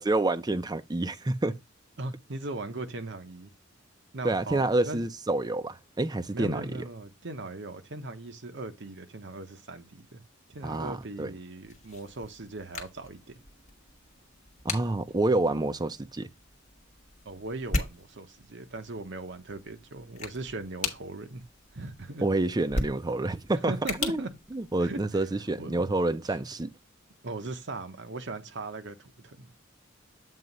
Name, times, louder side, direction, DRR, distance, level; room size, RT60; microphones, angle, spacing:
voice 1, 0.0-1.5 4.2-6.7 10.6-11.3 14.6-16.3 22.2-23.7 24.0-24.3 24.5-26.7, right 2 dB, 20° right, 0.5 m, -28 dB
voice 2, 2.0-3.5 4.1-5.1 6.3-10.2 10.5-13.2 17.2-21.4 21.7-22.2 23.6-24.3 24.8-25.3 25.6-25.9 27.2-29.6, right 2 dB, 60° right, 1.0 m, -39 dB
sound 1, 11.6-25.3, left 2 dB, 35° left, 1.4 m, -39 dB
7.7 x 2.9 x 5.3 m
head